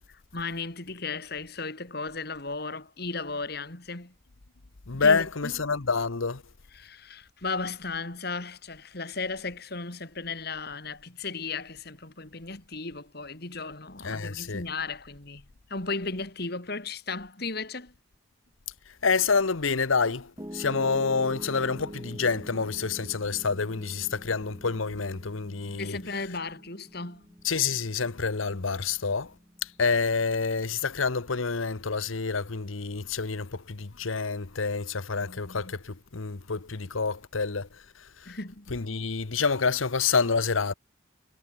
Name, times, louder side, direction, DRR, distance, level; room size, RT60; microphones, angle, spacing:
voice 1, 0.3-4.2 4.9-5.5 6.7-17.9 25.8-27.3 35.2-35.8 38.3-38.7, left 4 dB, 50° left, 2.8 m, -35 dB
voice 2, 4.9-6.4 14.0-14.6 19.0-26.0 27.4-29.3 29.6-37.7 38.2-38.3 38.7-40.7, left 5 dB, 90° left, 1.1 m, -28 dB
Piano, 20.4-32.6, equal, 15° right, 2.8 m, -46 dB
head